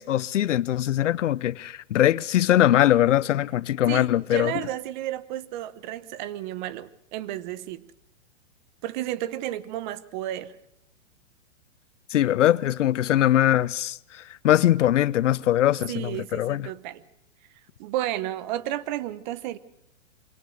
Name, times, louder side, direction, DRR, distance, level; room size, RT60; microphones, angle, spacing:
voice 1, 0.0-4.5 12.1-16.7, left 12 dB, 80° left, 0.8 m, -22 dB
voice 2, 3.9-7.8 8.8-10.5 15.9-17.0 17.8-19.6, right 13 dB, 40° right, 1.0 m, -32 dB
24.5 x 18.0 x 6.5 m
hypercardioid pair, 145°, 36 cm